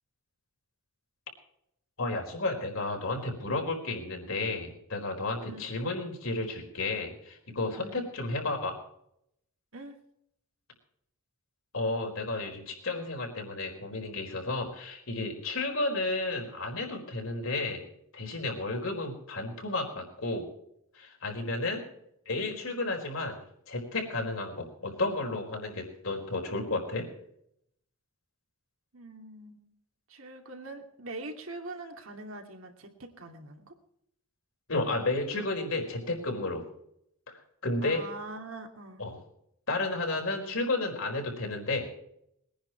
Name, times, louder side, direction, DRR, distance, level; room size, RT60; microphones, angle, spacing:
voice 1, 2.0-8.8 11.7-17.8 18.1-20.5 20.9-21.8 22.3-23.4 23.7-27.1 34.7-36.7 37.3-38.1 39.0-39.2 39.7-42.0, left 2 dB, 65° left, 2 dB, 4.5 m, -32 dB
voice 2, 7.8-8.1 9.7-10.0 28.9-29.7 30.1-33.7 37.8-39.0, right 2 dB, 65° right, 3 dB, 2.6 m, -43 dB
21.5 x 10.0 x 4.6 m, 0.74 s
head